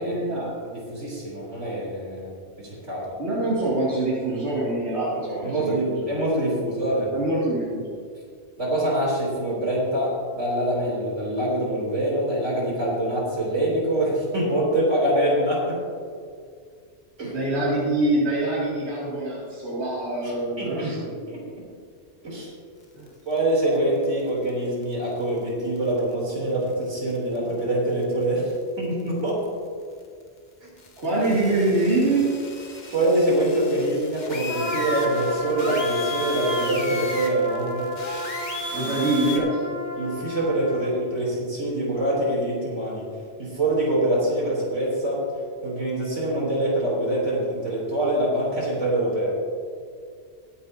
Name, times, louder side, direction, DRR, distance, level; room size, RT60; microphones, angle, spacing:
voice 1, 0.0-0.5 3.2-6.1 7.1-7.9 17.3-21.1 22.9-23.1 31.0-32.3 38.7-39.5, right 2 dB, 65° right, -9 dB, 2.7 m, -24 dB
voice 2, 0.6-2.3 2.6-3.2 5.4-7.1 8.6-15.9 17.2-17.4 20.2-21.6 22.2-22.5 23.3-29.4 30.6-30.7 31.1-31.2 32.9-37.9 39.4-39.5 39.9-43.1 43.4-45.2 45.6-49.4, right 1 dB, 80° right, -4 dB, 3.6 m, -25 dB
sound 1, 23.1-23.8 24.0-24.2 24.5-24.6 24.8-24.9 25.8-26.1 26.7-26.8 27.1-27.4 28.0-28.2 28.5-28.6 29.0-29.3 30.7-39.4, left 3 dB, 40° left, 1.1 m, -36 dB
Trumpet, 34.5-40.9, left 1 dB, 20° left, 1.9 m, -32 dB
21.5 x 8.5 x 2.7 m, 2.1 s
omnidirectional pair, 1.2 m